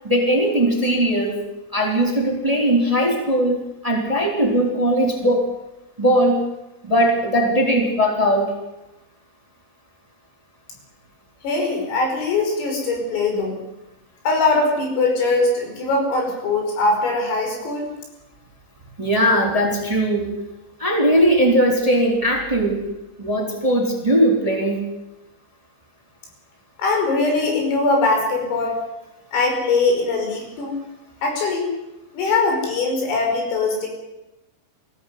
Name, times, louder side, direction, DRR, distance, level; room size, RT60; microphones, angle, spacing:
voice 1, 0.0-1.4 1.7-3.6 3.8-5.4 6.0-6.4 6.9-8.5 19.0-20.3 20.8-22.8 23.2-24.8, equal, 10° right, 1 dB, 3.2 m, -19 dB
voice 2, 11.4-13.6 14.3-17.9 26.8-28.8 29.3-30.8 31.2-31.7 32.1-33.9, left 3 dB, 90° left, 2 dB, 8.0 m, -21 dB
21.5 x 15.0 x 9.5 m, 0.95 s
omnidirectional pair, 5.8 m